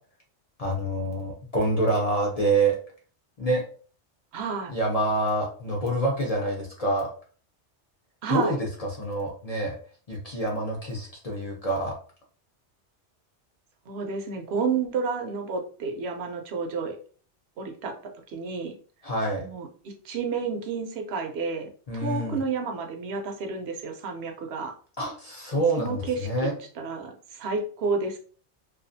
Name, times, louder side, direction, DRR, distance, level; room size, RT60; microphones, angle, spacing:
voice 1, 0.6-2.8 3.4-3.6 4.7-7.1 8.3-9.8 10.1-11.9 19.0-19.5 21.9-22.4 25.0-26.5, right 2 dB, 45° left, -1 dB, 0.5 m, -26 dB
voice 2, 4.3-4.7 8.2-8.6 13.9-17.0 17.6-18.0 18.3-18.8 19.4-24.7 25.8-26.5 26.7-28.2, right 5 dB, 70° right, 4 dB, 0.8 m, -31 dB
2.4 x 2.3 x 2.5 m, 0.41 s
omnidirectional pair, 1.2 m